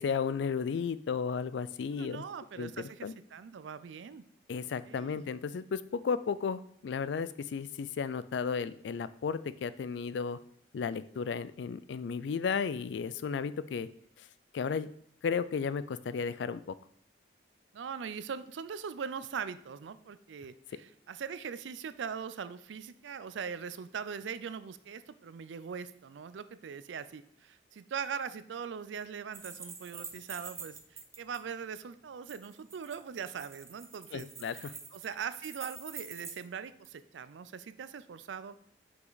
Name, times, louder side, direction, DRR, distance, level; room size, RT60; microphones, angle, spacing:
voice 1, 0.0-2.2 2.6-2.7 3.0-3.1 4.5-10.4 10.7-13.9 14.2-14.3 14.5-14.9 15.2-16.6 34.1-34.7, left 6 dB, 75° left, 15 dB, 0.3 m, -34 dB
voice 2, 2.0-4.2 4.9-5.2 17.7-38.6, right 6 dB, 85° right, 13 dB, 0.4 m, -41 dB
sound 1, 29.3-31.4 32.3-36.5 36.8-36.9, right 5 dB, 15° right, 0.4 m, -46 dB
5.7 x 5.0 x 4.0 m, 0.63 s
head